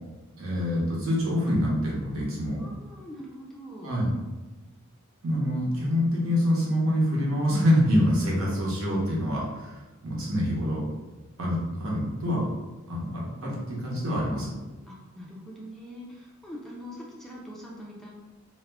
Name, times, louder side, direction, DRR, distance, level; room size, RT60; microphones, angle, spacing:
voice 1, 0.4-2.6 3.8-4.1 5.2-10.8 11.4-12.4 12.9-14.5, equal, 70° right, -4 dB, 0.8 m, -26 dB
voice 2, 2.6-3.9 14.9-18.1, equal, ahead, -4 dB, 0.3 m, -43 dB
2.3 x 2.0 x 3.4 m, 1.2 s
head